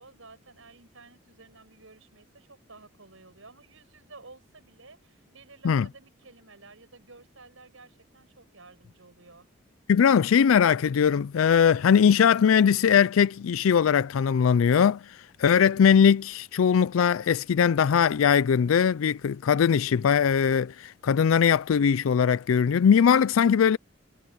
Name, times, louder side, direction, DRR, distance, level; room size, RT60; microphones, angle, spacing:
voice 1, 0.0-9.5, right 3 dB, 80° right, 5.9 m, -52 dB
voice 2, 9.9-23.8, left 7 dB, 85° left, 0.4 m, -21 dB
head